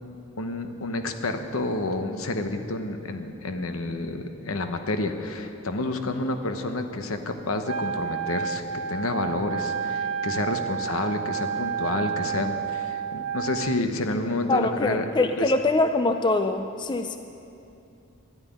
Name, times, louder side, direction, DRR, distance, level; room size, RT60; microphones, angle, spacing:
voice 1, 0.4-8.6 8.9-15.0 15.4-15.5, left 2 dB, 70° left, 7 dB, 1.0 m, -29 dB
Wind instrument woodwind instrument, 7.6-13.8, right 7 dB, 75° right, 0.5 m, -30 dB
voice 2, 14.5-17.2, left 2 dB, 20° left, 7 dB, 0.4 m, -23 dB
12.5 x 9.0 x 10.0 m, 2.7 s
head